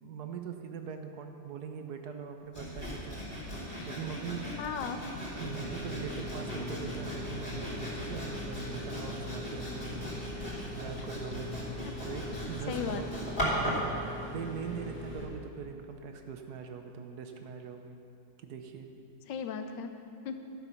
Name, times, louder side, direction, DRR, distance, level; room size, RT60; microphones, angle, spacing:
voice 1, 0.0-4.5 5.0-5.1 5.4-13.1 13.6-18.0 18.4-18.9, right 6 dB, 65° right, 6 dB, 1.2 m, -42 dB
Sawing, 2.5-13.9, equal, 25° left, 3.1 m, -38 dB
Bass guitar, 3.3-12.9, left 4 dB, 55° left, 1.1 m, -46 dB
voice 2, 4.6-5.0 11.8-12.2 12.7-13.0 19.3-20.0 20.2-20.3, left 6 dB, 85° left, 7 dB, 1.4 m, -36 dB
sound 1, 5.3-15.2, equal, 5° right, 2.2 m, -42 dB
12.0 x 7.3 x 5.7 m, 2.6 s
omnidirectional pair, 1.9 m